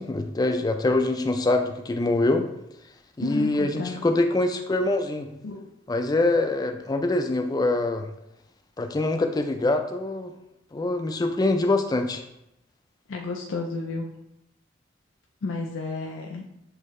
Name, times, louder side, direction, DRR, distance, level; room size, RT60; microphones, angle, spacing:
voice 1, 0.0-2.5 3.2-5.3 5.9-8.1 8.8-10.3 10.7-12.2, left 2 dB, 20° left, 6 dB, 0.3 m, -24 dB
voice 2, 3.2-4.0 5.4-5.7 13.1-14.1 15.4-16.4, left 3 dB, 85° left, 0 dB, 0.5 m, -32 dB
6.3 x 2.8 x 3.1 m, 0.83 s
head